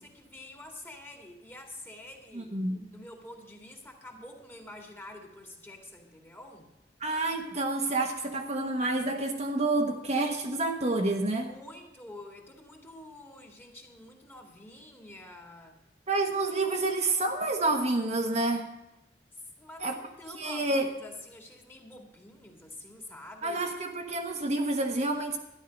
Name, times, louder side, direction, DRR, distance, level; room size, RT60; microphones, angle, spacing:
voice 1, 0.0-2.5 2.9-6.7 11.3-15.8 19.3-23.6, left 1 dB, 15° left, 1 dB, 2.0 m, -48 dB
voice 2, 2.3-2.8 7.0-11.5 16.1-18.7 19.8-20.0 20.3-20.9 23.4-25.4, right 2 dB, 40° right, 2 dB, 1.1 m, -28 dB
12.5 x 10.5 x 5.2 m, 0.91 s
head